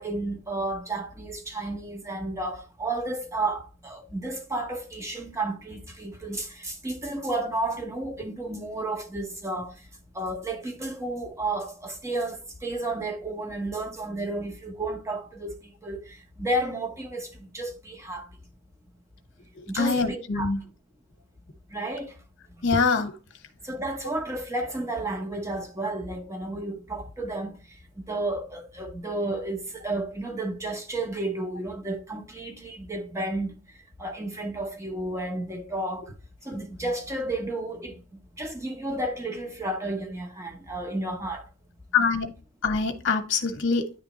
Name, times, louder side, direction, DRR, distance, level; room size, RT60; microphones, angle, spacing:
voice 1, 0.0-9.7 10.1-15.5 15.8-18.3 19.7-20.5 21.7-22.1 22.6-22.7 23.6-27.6 28.1-33.5 34.0-36.0 36.4-38.0 38.4-41.4, right 2 dB, 15° right, 0.9 m, -32 dB
voice 2, 19.8-20.6 22.6-23.1 41.9-42.3 42.6-43.8, left 4 dB, 55° left, 1.0 m, -24 dB
9.9 x 3.4 x 2.9 m
head